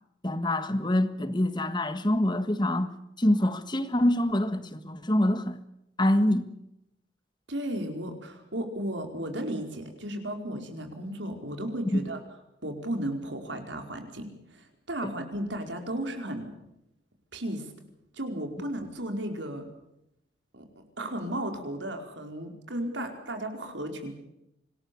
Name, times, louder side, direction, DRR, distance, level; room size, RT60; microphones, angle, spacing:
voice 1, 0.2-2.9 3.2-5.6 6.0-6.5 11.9-12.1, left 1 dB, 25° left, 1.6 m, -25 dB
voice 2, 7.5-12.2 12.6-16.5 17.3-17.7 18.1-19.7 20.5-24.1, right 1 dB, 75° right, 4.7 m, -34 dB
26.5 x 19.5 x 7.0 m
head